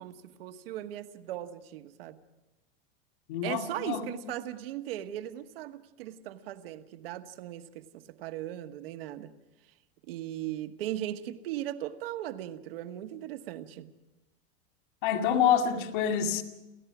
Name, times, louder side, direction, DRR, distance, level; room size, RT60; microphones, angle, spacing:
voice 1, 0.0-2.2 3.4-9.3 10.1-13.9, right 13 dB, 70° right, 1.3 m, -38 dB
voice 2, 3.3-4.0 15.0-16.4, left 8 dB, 55° left, 2.3 m, -27 dB
29.0 x 15.0 x 6.0 m
supercardioid pair, 175°, 30 cm